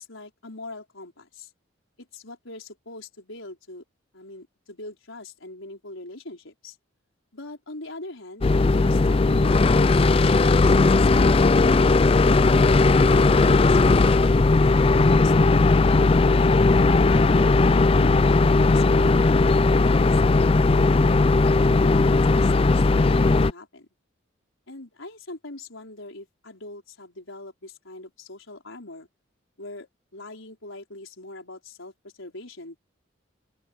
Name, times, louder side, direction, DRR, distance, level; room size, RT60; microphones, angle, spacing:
voice 1, 0.0-1.5 2.0-3.8 4.1-6.8 7.3-14.3 19.6-21.2 21.4-23.9 24.7-29.1 29.6-32.8, left 2 dB, 90° left, 5.0 m, -42 dB
sound 1, 8.4-23.5, left 3 dB, 30° left, 0.4 m, -18 dB
open air
head